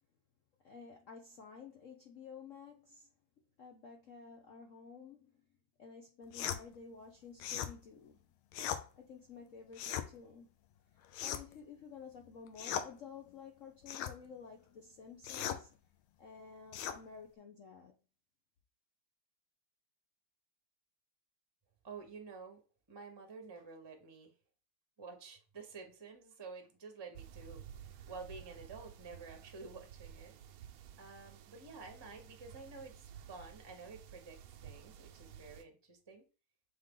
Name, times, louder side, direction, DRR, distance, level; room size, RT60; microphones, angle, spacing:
voice 1, 0.6-3.1 3.6-5.4 5.8-8.2 9.0-10.5 10.9-15.8 16.2-17.9, left 6 dB, 65° left, 0.7 m, -52 dB
sound 1, 6.3-6.6 7.4-7.7 8.5-8.8 9.7-10.1 11.1-11.6 12.6-12.9 13.9-14.2 15.2-15.6 16.7-17.0, left 9 dB, 90° left, 1.5 m, -38 dB
voice 2, 21.8-22.6 22.9-24.3 25.0-30.3 31.0-36.2, right 4 dB, 20° right, 0.8 m, -51 dB
sound 2, 27.1-35.6, right 10 dB, 80° right, 1.5 m, -53 dB
6.6 x 3.8 x 3.7 m
omnidirectional pair, 2.3 m